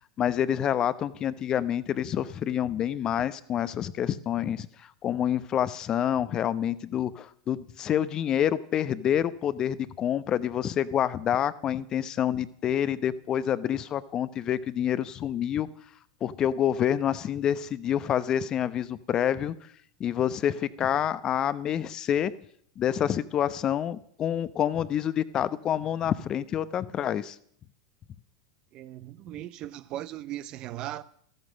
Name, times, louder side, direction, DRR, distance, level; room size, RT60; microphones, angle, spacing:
voice 1, 0.2-15.7 16.2-19.5 20.0-22.3 22.8-27.4, left 10 dB, 35° left, 0.8 m, -27 dB
voice 2, 28.7-31.0, right 13 dB, 40° right, 0.7 m, -38 dB
14.0 x 13.5 x 6.4 m
figure-of-eight pair, 90°, 2 cm